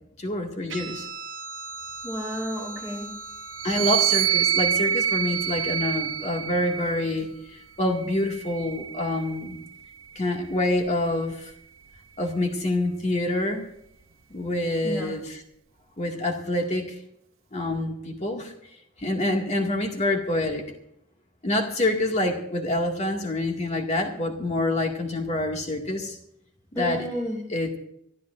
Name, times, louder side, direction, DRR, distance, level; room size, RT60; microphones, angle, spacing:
voice 1, 0.2-1.1 3.6-9.6 10.2-11.5 12.2-13.6 14.3-15.4 16.0-16.9 17.5-18.5 19.0-20.6 21.4-26.2 26.7-27.0 27.5-27.8, left 1 dB, 35° left, 2 dB, 2.1 m, -26 dB
Guitar, 0.7-7.6, right 3 dB, 65° right, 1.1 m, -41 dB
voice 2, 2.0-3.1 14.8-15.1 26.7-27.4, equal, 10° left, -4 dB, 3.2 m, -31 dB
sound 1, 3.5-7.1 8.0-9.6, right 10 dB, 85° right, 0.7 m, -26 dB
24.5 x 13.0 x 2.6 m, 0.75 s
head